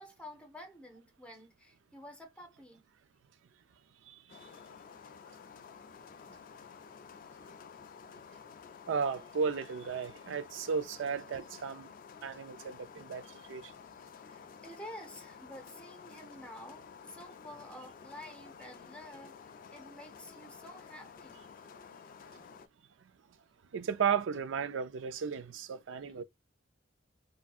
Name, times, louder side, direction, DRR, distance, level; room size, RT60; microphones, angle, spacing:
voice 1, 0.0-2.9 14.2-21.5, left 1 dB, 5° left, 0.8 m, -50 dB
sound 1, 4.3-22.7, left 6 dB, 45° left, 0.3 m, -52 dB
voice 2, 8.9-11.9 12.2-13.2 13.5-13.6 23.7-26.2, right 6 dB, 70° right, 0.4 m, -34 dB
3.3 x 2.6 x 2.3 m
head